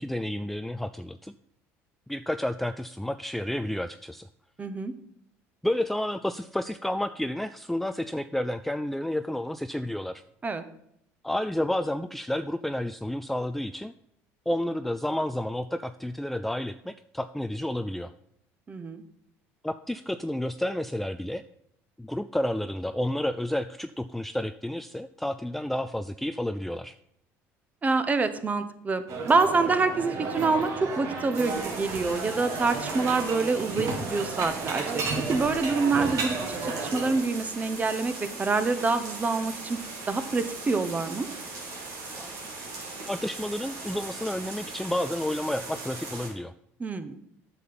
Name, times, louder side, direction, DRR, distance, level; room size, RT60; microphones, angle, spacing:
voice 1, 0.0-1.3 2.1-4.3 5.6-10.2 11.2-13.9 14.5-18.1 19.6-21.4 22.0-26.9 42.2-42.3 43.0-46.5, left 1 dB, 5° left, 11 dB, 0.3 m, -30 dB
voice 2, 4.6-4.9 10.4-10.6 18.7-19.0 27.8-35.0 35.3-39.8 40.1-41.3 46.8-47.2, right 4 dB, 25° right, 11 dB, 0.9 m, -26 dB
sound 1, 29.1-37.2, right 4 dB, 60° right, 2.0 m, -33 dB
sound 2, 31.3-46.3, right 3 dB, 80° right, 3.2 m, -40 dB
8.3 x 6.9 x 5.7 m, 0.74 s
supercardioid pair, 100°, 6 cm